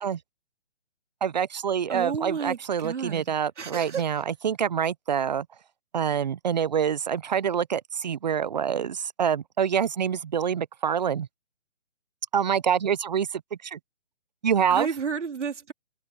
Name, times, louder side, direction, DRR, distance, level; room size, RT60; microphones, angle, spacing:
voice 1, 1.2-5.5 5.9-11.3 12.3-13.8 14.4-14.9, right 8 dB, 40° right, 0.5 m, -26 dB
voice 2, 1.9-4.0 14.7-15.7, right 6 dB, 85° right, 2.7 m, -32 dB
hypercardioid pair, 160°, 35 cm